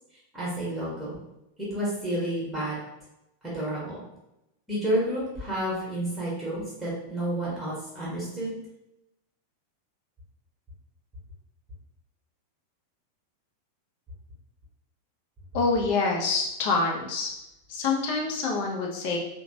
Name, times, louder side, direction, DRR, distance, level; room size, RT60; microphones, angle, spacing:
voice 1, 0.3-1.2 1.6-2.8 3.4-4.0 4.7-8.6, right 1 dB, 10° right, -7 dB, 1.0 m, -30 dB
voice 2, 15.5-17.3 17.7-19.2, left 4 dB, 50° left, 0 dB, 0.6 m, -26 dB
2.9 x 2.2 x 2.7 m, 0.89 s
figure-of-eight pair, 90°, 0 cm